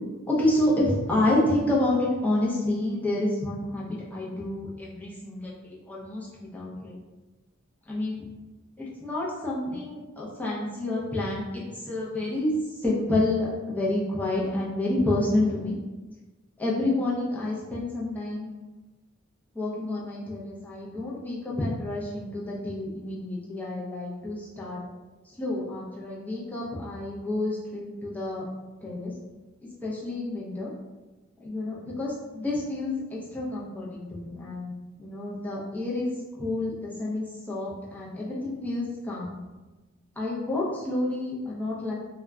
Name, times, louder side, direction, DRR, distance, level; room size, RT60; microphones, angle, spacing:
voice 1, 0.3-7.0 7.9-8.3 8.8-15.7 16.6-18.5 19.5-24.8 25.3-28.5 28.8-29.1 29.8-30.7 31.4-39.4 40.2-41.9, left 1 dB, 10° left, -6 dB, 0.5 m, -29 dB
2.2 x 2.1 x 3.5 m, 1.2 s
head